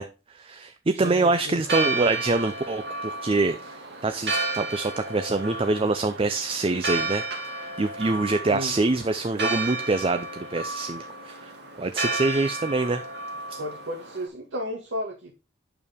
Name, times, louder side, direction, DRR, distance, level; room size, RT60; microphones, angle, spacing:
voice 1, 0.0-3.8 4.0-11.5 11.8-13.0 13.5-13.6, right 3 dB, 30° right, 0.5 m, -25 dB
voice 2, 0.9-1.6 8.5-8.7 13.6-15.3, equal, 80° right, 1.8 m, -33 dB
Church bell, 1.6-14.3, right 2 dB, 60° right, 2.0 m, -32 dB
8.8 x 6.9 x 3.5 m
head